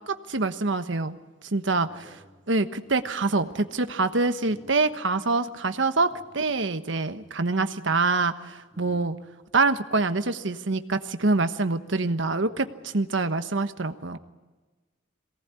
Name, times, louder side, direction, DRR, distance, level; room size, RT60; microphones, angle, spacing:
voice 1, 0.1-1.2 1.5-2.2 2.5-9.2 9.5-14.2, right 3 dB, 75° right, 9 dB, 1.2 m, -25 dB
voice 2, 1.8-2.4 4.5-4.7 6.2-6.3 8.7-9.0, equal, 5° left, 1 dB, 3.1 m, -52 dB
23.0 x 18.0 x 9.6 m, 1.3 s
head